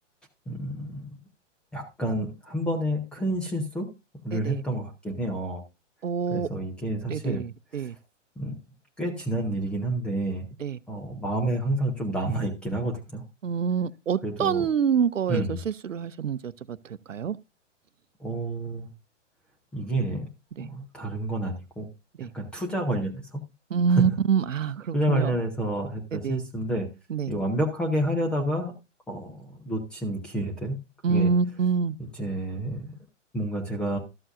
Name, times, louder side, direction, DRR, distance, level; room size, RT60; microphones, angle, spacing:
voice 1, 0.5-1.2 1.7-3.9 4.2-5.6 6.3-7.4 7.7-7.9 8.4-8.6 9.0-10.5 10.9-13.2 14.2-14.7 15.3-15.6 18.2-18.9 19.7-20.3 20.6-21.9 22.3-23.4 23.9-24.1 24.9-26.9 27.3-28.7 29.1-30.8 31.1-31.3 32.0-33.0 33.3-34.0, right 1 dB, 5° left, 0.4 m, -29 dB
voice 2, 4.3-4.6 6.0-6.5 7.1-7.9 10.6-10.8 13.4-17.4 20.6-20.7 22.2-22.3 23.7-25.3 26.1-26.4 27.1-27.3 31.0-32.0, right 6 dB, 90° right, 0.6 m, -26 dB
12.5 x 7.7 x 2.5 m
figure-of-eight pair, 125°, 37 cm